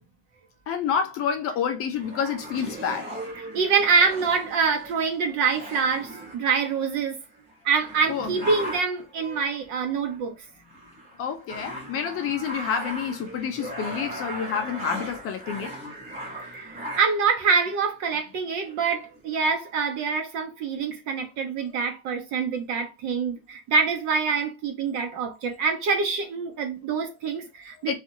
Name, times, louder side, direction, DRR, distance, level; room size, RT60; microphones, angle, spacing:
voice 1, 0.7-3.1 8.1-8.3 11.2-15.8 27.8-27.9, left 7 dB, 40° left, 0.5 m, -28 dB
sound 1, 1.9-7.0 7.5-7.6 7.8-9.1 9.8-10.2 10.5-17.3 18.1-18.2 18.5-19.3, equal, 15° right, 1.1 m, -38 dB
voice 2, 3.5-7.2 7.6-10.3 16.5-27.9, right 5 dB, 50° right, 0.8 m, -25 dB
2.8 x 2.4 x 2.6 m
cardioid pair, 145°, 38 cm